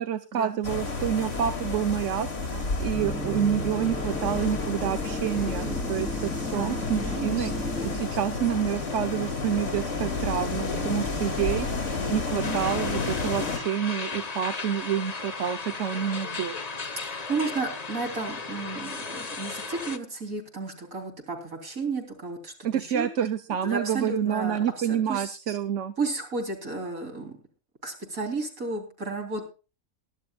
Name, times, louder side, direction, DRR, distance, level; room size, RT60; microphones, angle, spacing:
voice 1, 0.0-7.5 7.8-11.7 12.1-16.6 22.6-25.9, right 9 dB, 65° right, 10 dB, 1.2 m, -28 dB
sound 1, 0.6-13.6, left 3 dB, 60° left, 2.9 m, -31 dB
sound 2, 2.9-8.0, left 1 dB, ahead, 3.6 m, -35 dB
voice 2, 6.5-8.4 10.6-11.0 12.3-12.6 17.0-23.1 23.6-25.6 26.0-27.4 27.8-29.4, right 3 dB, 85° right, 2 dB, 3.9 m, -33 dB
sound 3, 12.4-20.0, left 4 dB, 30° left, 1.2 m, -35 dB
22.5 x 12.0 x 2.4 m, 0.33 s
omnidirectional pair, 1.4 m